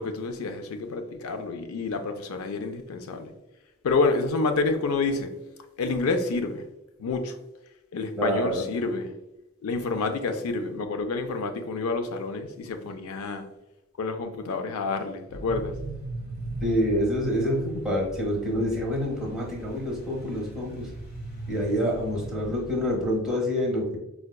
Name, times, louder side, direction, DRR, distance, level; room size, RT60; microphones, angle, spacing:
voice 1, 0.0-3.3 3.8-5.3 5.8-6.6 7.0-7.4 7.9-9.1 9.6-13.5 14.0-15.7, left 3 dB, 80° left, 0.4 m, -28 dB
voice 2, 8.2-8.6 16.6-20.9 21.5-24.0, equal, 5° right, 0.8 m, -27 dB
sound 1, 15.3-23.2, right 2 dB, 45° left, 1.2 m, -39 dB
4.6 x 2.2 x 2.2 m
head